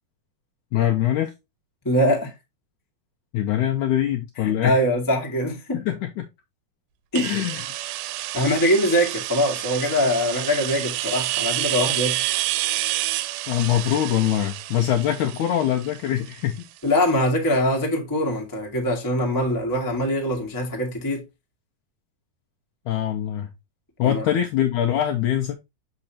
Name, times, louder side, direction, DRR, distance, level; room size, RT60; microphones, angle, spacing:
voice 1, 0.7-1.3 3.3-4.8 5.8-6.2 7.2-7.6 13.5-16.7 22.9-23.5 24.0-25.5, left 11 dB, 85° left, 1.7 m, -23 dB
voice 2, 1.8-2.3 4.4-5.8 7.1-7.4 8.3-12.2 16.8-21.2 24.0-24.2, equal, 30° left, 0.3 m, -23 dB
sound 1, 7.2-16.8, right 16 dB, 80° right, 2.3 m, -29 dB
6.6 x 5.4 x 2.8 m
omnidirectional pair, 4.2 m